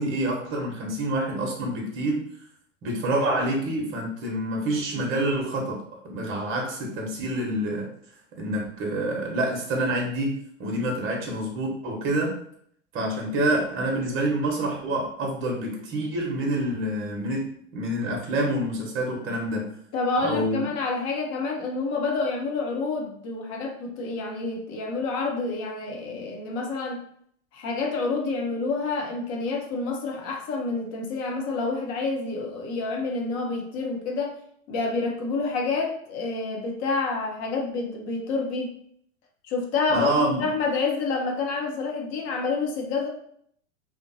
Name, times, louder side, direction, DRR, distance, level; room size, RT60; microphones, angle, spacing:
voice 1, 0.0-2.3 2.8-5.8 6.1-7.9 8.4-12.4 12.9-19.7 20.2-20.6 39.9-40.5, right 1 dB, 30° right, 0 dB, 0.9 m, -27 dB
voice 2, 19.9-27.0 27.5-34.4 34.7-38.7 39.4-43.1, left 3 dB, 40° left, 0 dB, 0.8 m, -28 dB
2.7 x 2.1 x 2.6 m, 0.65 s
hypercardioid pair, 100°, 39 cm